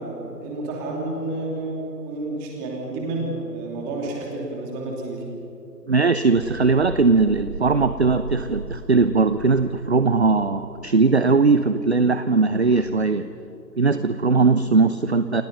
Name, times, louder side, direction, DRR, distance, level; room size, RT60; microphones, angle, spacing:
voice 1, 0.0-5.2, right 2 dB, 10° right, -1 dB, 2.7 m, -30 dB
voice 2, 5.9-13.3 13.8-15.4, right 4 dB, 40° right, 11 dB, 0.7 m, -19 dB
sound 1, 6.4-11.3 12.6-12.8, right 3 dB, 60° right, 2.2 m, -37 dB
29.0 x 25.5 x 5.5 m, 3.0 s
figure-of-eight pair, 160°, 49 cm